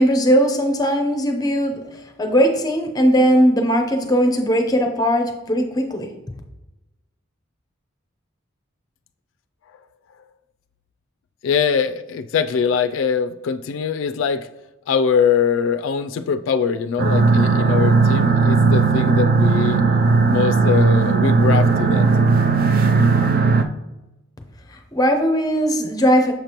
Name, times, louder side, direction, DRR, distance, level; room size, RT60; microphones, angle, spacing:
voice 1, 0.0-1.8 2.2-6.1 24.9-26.3, equal, 20° left, 5 dB, 0.6 m, -18 dB
voice 2, 11.4-14.5 14.9-19.8 20.2-22.1, left 6 dB, 75° left, 8 dB, 0.3 m, -22 dB
sound 1, 17.0-23.6, right 4 dB, 45° right, 0.4 m, -16 dB
6.9 x 5.2 x 2.9 m, 0.98 s
head